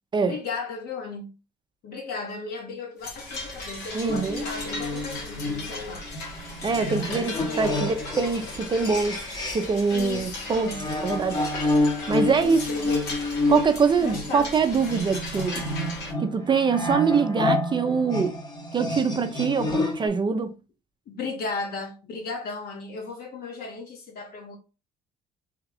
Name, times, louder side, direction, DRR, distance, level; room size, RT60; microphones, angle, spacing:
voice 1, 0.2-1.3 1.8-6.1 6.8-8.0 9.9-10.8 12.2-13.2 14.0-14.5 21.1-24.6, left 3 dB, 65° left, 1.3 m, -35 dB
sound 1, 3.0-16.1, left 2 dB, 90° left, 1.3 m, -37 dB
voice 2, 3.9-4.4 6.6-9.3 9.5-10.7 11.0-11.4 12.1-12.6 13.5-15.8 16.2-18.4 18.7-20.6, right 5 dB, 25° right, 0.4 m, -24 dB
sound 2, 4.1-9.8 10.1-20.1, left 2 dB, 25° left, 0.8 m, -29 dB
3.5 x 2.3 x 3.4 m
cardioid pair, 110°, 17 cm